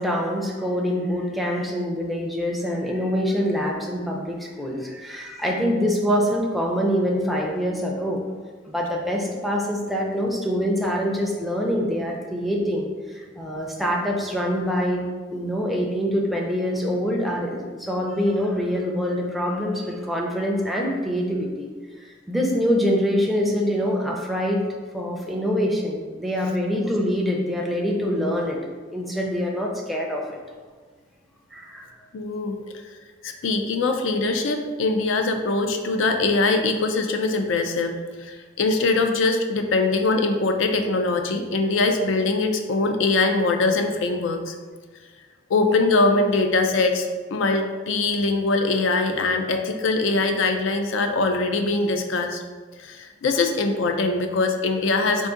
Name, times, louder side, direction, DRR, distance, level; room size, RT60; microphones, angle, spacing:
voice 1, 0.0-8.2 8.6-15.0 15.3-21.7 22.0-24.6 24.9-28.6 28.9-30.4 31.5-31.9, equal, ahead, -2 dB, 0.5 m, -25 dB
voice 2, 32.1-32.6 33.2-44.5 45.5-52.4 52.8-55.3, left 3 dB, 70° left, 5 dB, 0.4 m, -22 dB
3.7 x 2.6 x 3.7 m, 1.4 s
head